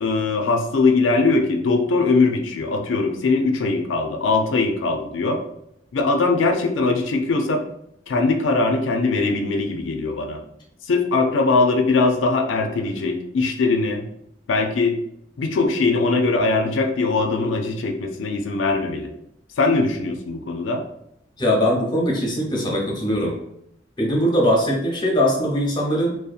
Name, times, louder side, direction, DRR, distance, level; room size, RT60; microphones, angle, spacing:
voice 1, 0.0-5.4 5.9-7.6 8.1-10.4 10.9-14.0 14.5-15.0 15.4-19.1 19.6-20.8, left 3 dB, 85° left, 5 dB, 0.4 m, -21 dB
voice 2, 21.4-23.4 24.0-26.2, equal, 25° left, -2 dB, 0.6 m, -21 dB
2.7 x 2.1 x 2.4 m, 0.77 s
head